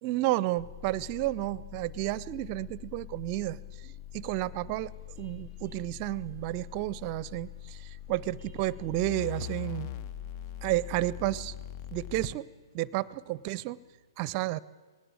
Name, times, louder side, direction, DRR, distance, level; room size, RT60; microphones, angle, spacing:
voice 1, 0.0-4.9 5.2-9.9 10.6-11.5 11.9-12.5 12.7-13.8 14.2-14.6, right 17 dB, 35° right, 21 dB, 0.6 m, -31 dB
sound 1, 0.6-12.3, left 11 dB, 40° left, 0.6 m, -43 dB
sound 2, 4.7-14.0, left 1 dB, 85° left, 7.2 m, -63 dB
19.0 x 17.0 x 8.8 m, 1.4 s
figure-of-eight pair, 120°, 2 cm